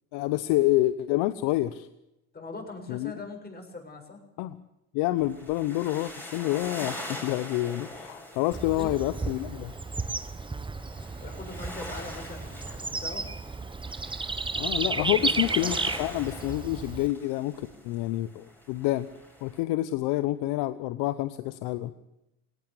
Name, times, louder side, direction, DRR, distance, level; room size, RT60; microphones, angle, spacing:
voice 1, 0.1-1.9 2.9-3.1 4.4-4.6 4.9-9.7 14.6-19.1 19.4-21.9, left 16 dB, 70° left, 13 dB, 1.1 m, -28 dB
voice 2, 2.3-4.2 8.8-9.0 11.2-13.3 14.8-15.8, left 3 dB, 25° left, 3 dB, 7.2 m, -41 dB
sound 1, 5.2-19.6, left 1 dB, 5° left, 6.1 m, -44 dB
Bird / Insect, 8.5-17.1, right 3 dB, 10° right, 1.2 m, -33 dB
18.5 x 18.0 x 8.5 m, 0.88 s
supercardioid pair, 90°, 41 cm